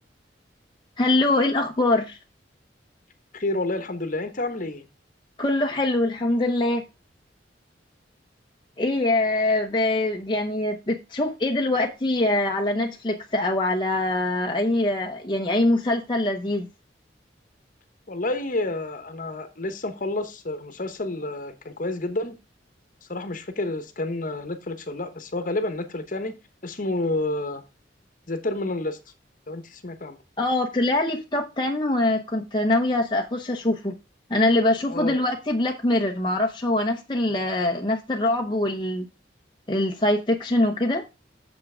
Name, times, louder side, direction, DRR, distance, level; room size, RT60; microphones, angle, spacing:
voice 1, 1.0-2.2 5.4-6.8 8.8-16.7 30.4-33.9 34.3-39.1 39.7-41.0, left 2 dB, 25° left, 1 dB, 0.8 m, -23 dB
voice 2, 3.3-4.9 18.1-22.3 23.0-26.3 26.6-27.6 28.3-29.0 29.5-30.2 34.9-35.2, left 2 dB, 45° left, 9 dB, 1.1 m, -29 dB
7.3 x 5.7 x 4.9 m, 0.27 s
head